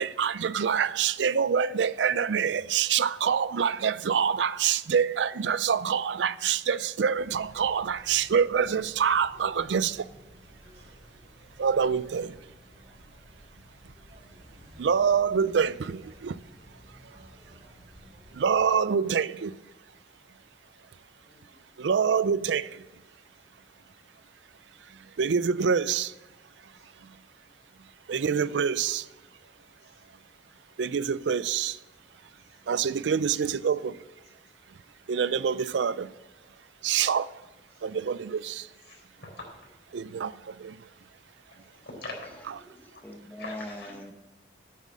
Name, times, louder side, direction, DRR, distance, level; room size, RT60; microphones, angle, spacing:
voice 1, 0.0-10.1 11.6-12.4 14.8-16.4 17.0-17.3 18.3-19.5 21.8-22.8 24.9-26.1 26.6-26.7 27.0-27.2 28.1-29.1 30.8-31.8 32.7-34.0 34.7-34.8 35.1-36.1 36.8-37.4 37.8-38.7 39.9-40.9, right 7 dB, 90° right, 0.4 m, -26 dB
sound 1, 7.1-18.7, equal, 35° right, 2.8 m, -54 dB
voice 2, 38.9-39.4 41.5-42.4 42.9-43.0 43.4-43.9, left 2 dB, 75° left, 4.2 m, -44 dB
voice 3, 42.7-44.1, left 1 dB, 10° left, 0.9 m, -41 dB
9.4 x 7.2 x 7.5 m
head